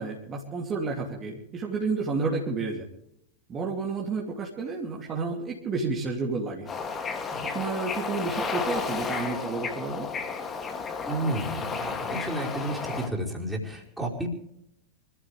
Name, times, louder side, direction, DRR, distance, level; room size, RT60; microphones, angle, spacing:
voice 1, 0.0-2.9 3.5-6.7 7.4-10.1, right 4 dB, 25° right, -1 dB, 2.8 m, -31 dB
Bird / Ocean, 6.7-13.1, left 5 dB, 20° left, 2.6 m, -32 dB
voice 2, 11.1-14.4, right 1 dB, 5° right, -2 dB, 4.8 m, -31 dB
25.5 x 15.0 x 3.4 m, 0.77 s
figure-of-eight pair, 90°, 0 cm